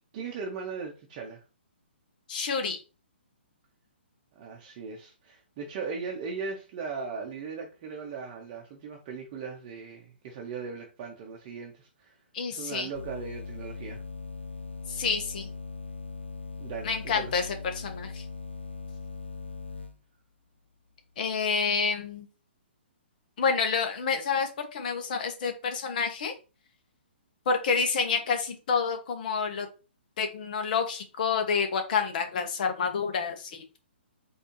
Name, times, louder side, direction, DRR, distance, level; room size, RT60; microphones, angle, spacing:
voice 1, 0.1-1.4 4.4-12.2 12.5-14.0 16.6-17.3, right 5 dB, 35° right, 0 dB, 0.8 m, -38 dB
voice 2, 2.3-2.8 12.3-12.9 14.9-15.5 16.8-17.5 17.7-18.2 21.2-22.3 23.4-26.3 27.5-29.7 30.2-33.8, left 5 dB, 45° left, 5 dB, 1.0 m, -28 dB
sound 1, 12.9-20.0, left 4 dB, 85° left, 0.7 m, -40 dB
4.3 x 2.7 x 3.0 m, 0.32 s
figure-of-eight pair, 130°, 6 cm